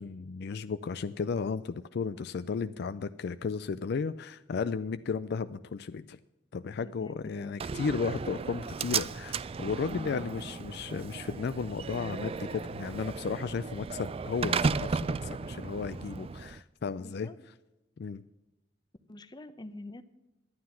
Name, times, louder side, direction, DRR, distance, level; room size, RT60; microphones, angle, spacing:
voice 1, 0.0-6.2 6.5-17.3 18.0-18.2, left 5 dB, 60° left, 13 dB, 0.4 m, -34 dB
voice 2, 6.8-7.6 9.9-10.3 17.0-17.4 19.1-20.0, left 2 dB, 25° left, 11 dB, 0.8 m, -46 dB
Slam, 7.6-16.6, right 5 dB, 30° right, 0.3 m, -35 dB
11.5 x 9.6 x 5.7 m, 0.98 s
head